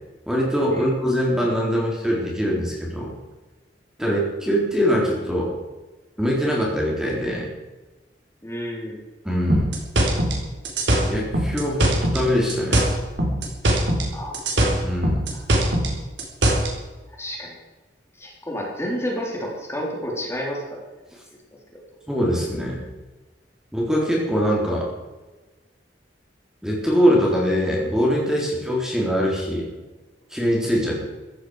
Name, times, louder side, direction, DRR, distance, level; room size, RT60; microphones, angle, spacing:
voice 1, 0.3-3.1 4.0-5.5 6.2-7.5 9.2-9.7 11.1-12.8 14.8-15.3 22.1-22.8 23.7-24.9 26.6-29.7 30.3-31.0, equal, 5° right, -3 dB, 3.8 m, -22 dB
voice 2, 8.4-9.0 14.1-14.4 15.3-15.4 17.2-17.6 18.2-20.8 21.7-21.8, equal, 15° left, -2 dB, 3.8 m, -30 dB
sound 1, 9.5-12.2 12.5-14.1 14.3-16.7, right 1 dB, 75° right, 4.2 m, -20 dB
15.5 x 14.0 x 5.0 m, 1.2 s
head